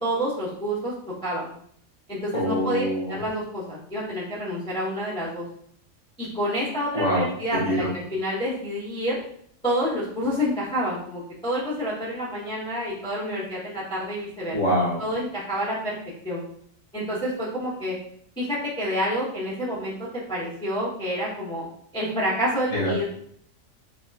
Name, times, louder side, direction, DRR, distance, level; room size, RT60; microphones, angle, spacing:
voice 1, 0.0-0.9 1.2-1.5 2.1-5.4 6.2-9.2 9.6-14.5 15.0-16.0 16.2-16.4 16.9-17.9 18.4-19.9 20.3-21.6 21.9-23.0, equal, 5° left, -9 dB, 0.6 m, -28 dB
voice 2, 2.3-3.1 6.9-7.9 14.5-15.0 22.7-23.0, equal, 30° right, -9 dB, 0.7 m, -25 dB
3.1 x 2.9 x 2.2 m, 0.65 s
omnidirectional pair, 1.4 m